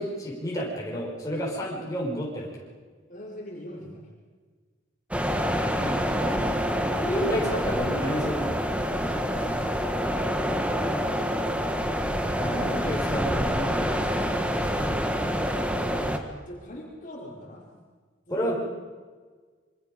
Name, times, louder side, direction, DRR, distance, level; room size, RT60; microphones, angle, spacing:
voice 1, 0.0-2.5 5.8-6.0 6.2-8.5 12.3-14.2 18.3-18.5, equal, 20° left, -4 dB, 5.5 m, -31 dB
voice 2, 3.1-4.0 9.3-11.3 12.5-12.8 14.6-16.1 16.5-17.7 18.3-18.5, equal, 45° left, -3 dB, 4.8 m, -42 dB
sound 1, 5.1-16.2, equal, 5° right, 1.6 m, -27 dB
27.0 x 24.5 x 5.2 m, 1.5 s
head